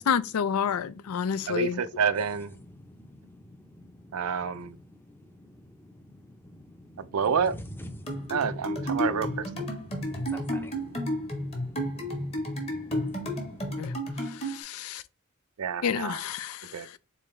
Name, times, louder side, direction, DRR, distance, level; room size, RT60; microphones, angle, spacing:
voice 1, 0.0-1.8 13.8-13.9 14.2-15.0 15.8-17.0, left 7 dB, 80° left, 0.4 m, -30 dB
voice 2, 1.5-2.5 4.1-4.8 7.0-7.5 8.3-9.7 15.6-16.2 16.7-16.9, right 6 dB, 90° right, 0.5 m, -28 dB
voice 3, 2.7-4.6 5.1-7.1 7.9-13.8, equal, 10° left, 0.6 m, -47 dB
sound 1, 8.1-14.6, equal, 30° left, 1.2 m, -32 dB
3.9 x 3.8 x 3.2 m
head